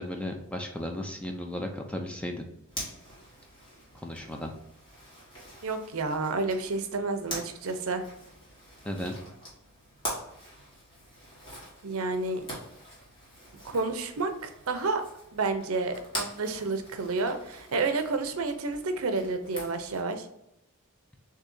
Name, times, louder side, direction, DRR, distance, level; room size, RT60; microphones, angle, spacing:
voice 1, 0.0-2.4 4.0-4.5 8.8-9.2, left 1 dB, 5° left, 3 dB, 0.4 m, -35 dB
Zipper (clothing), 2.7-20.0, equal, 20° left, 1.6 m, -44 dB
voice 2, 5.6-8.0 11.8-12.4 13.6-15.0 15.3-20.3, right 3 dB, 75° right, 8 dB, 0.6 m, -30 dB
6.6 x 2.8 x 2.6 m, 0.84 s
head